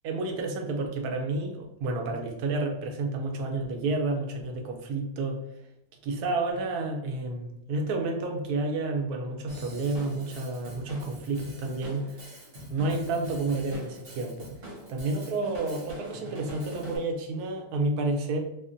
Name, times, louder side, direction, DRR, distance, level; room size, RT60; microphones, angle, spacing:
voice 1, 0.0-5.4 6.0-12.2 12.7-14.5 14.9-18.4, right 2 dB, 70° right, 3 dB, 0.9 m, -30 dB
Drum kit / Drum, 9.5-17.0, equal, 45° right, 0.8 m, -44 dB
3.5 x 2.1 x 2.5 m, 0.83 s
omnidirectional pair, 2.0 m